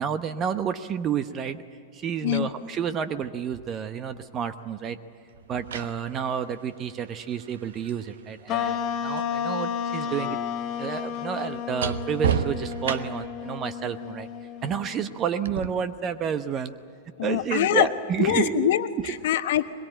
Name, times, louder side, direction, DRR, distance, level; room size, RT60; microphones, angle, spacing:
voice 1, 0.0-1.6 1.9-5.0 5.5-10.4 10.8-14.3 14.6-16.7 17.2-18.7, right 8 dB, 30° right, 11 dB, 0.9 m, -30 dB
sound 1, 4.1-4.2 5.3-9.4 9.6-13.4 15.4-15.7, right 7 dB, 70° right, 1.1 m, -33 dB
sound 2, 8.5-15.2, left 7 dB, 40° left, 1.5 m, -32 dB
voice 2, 17.2-17.9 18.2-19.6, left 12 dB, 60° left, 10 dB, 1.2 m, -24 dB
22.5 x 22.0 x 9.0 m, 2.6 s
figure-of-eight pair, 100°, 0 cm